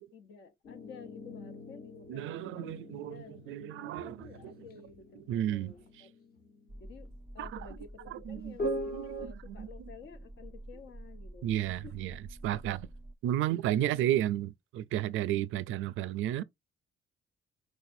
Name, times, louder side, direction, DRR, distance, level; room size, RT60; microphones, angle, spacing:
voice 1, 0.1-2.7 3.1-6.1 6.8-8.7 9.2-11.5 11.8-12.0 13.7-13.9 15.1-15.4, left 6 dB, 70° left, 1.2 m, -52 dB
sound 1, 0.6-7.0 8.6-9.3, right 1 dB, 50° left, 1.3 m, -42 dB
voice 2, 2.1-4.5 5.3-6.1 7.4-7.6 8.1-8.6 8.9-9.7 11.4-12.9 13.2-16.4, right 12 dB, 85° right, 0.5 m, -33 dB
sound 2, 6.7-13.1, right 1 dB, 10° right, 0.6 m, -48 dB
4.7 x 4.2 x 2.6 m
cardioid pair, 90°, 20 cm